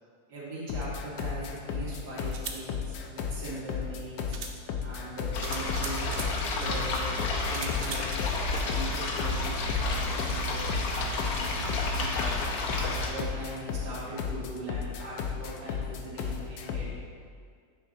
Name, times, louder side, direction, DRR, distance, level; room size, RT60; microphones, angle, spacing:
voice 1, 0.3-4.4 4.8-6.2 6.5-7.1 7.4-8.2 8.6-12.3 12.7-16.9, right 2 dB, 90° right, -6 dB, 2.0 m, -40 dB
Tight Metallic Drum Loop, 0.7-17.0, left 7 dB, 90° left, 1.2 m, -35 dB
sound 1, 1.2-1.3 2.2-2.6 3.8-3.9 4.3-4.6 5.4-6.3 7.5-8.2, right 5 dB, 75° right, 0.5 m, -39 dB
sound 2, 5.3-13.1, left 2 dB, 70° left, 1.3 m, -31 dB
9.3 x 4.5 x 3.9 m, 2.1 s
omnidirectional pair, 1.7 m